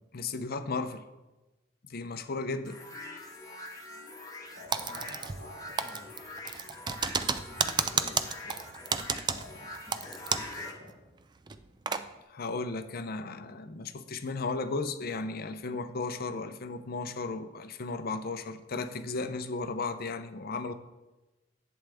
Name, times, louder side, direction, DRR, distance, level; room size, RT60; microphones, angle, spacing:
voice 1, 0.1-1.0 1.9-2.8 12.3-20.7, left 3 dB, 50° left, 10 dB, 0.6 m, -35 dB
sound 1, 2.7-10.7, left 2 dB, 20° left, 1.2 m, -44 dB
voice 2, 4.5-6.1 7.1-8.2 8.4-8.7 9.3-10.3 10.6-10.9, left 1 dB, 70° right, -3 dB, 3.2 m, -49 dB
Typing, 4.7-5.5 5.8-10.6 10.9-11.0 11.5-12.0, right 5 dB, 25° right, 0.4 m, -31 dB
11.0 x 7.9 x 3.5 m, 1.1 s
head